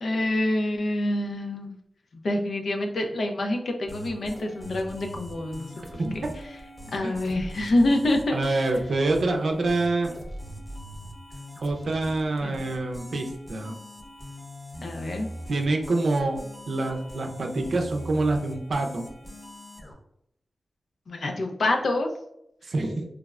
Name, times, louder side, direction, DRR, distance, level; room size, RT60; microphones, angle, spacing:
voice 1, 0.0-1.7 2.1-6.2 6.9-8.7 9.5-9.6 12.4-12.6 14.8-15.3 21.1-22.1, left 1 dB, 75° left, 3 dB, 0.4 m, -26 dB
sound 1, 3.9-19.9, equal, 35° left, 0.9 m, -42 dB
voice 2, 6.0-6.3 7.0-7.1 8.3-10.1 11.6-13.8 15.5-16.4 16.7-19.1 22.6-23.0, right 2 dB, 75° right, 3 dB, 0.5 m, -26 dB
3.3 x 2.0 x 2.3 m, 0.78 s
cardioid pair, 45°, 0 cm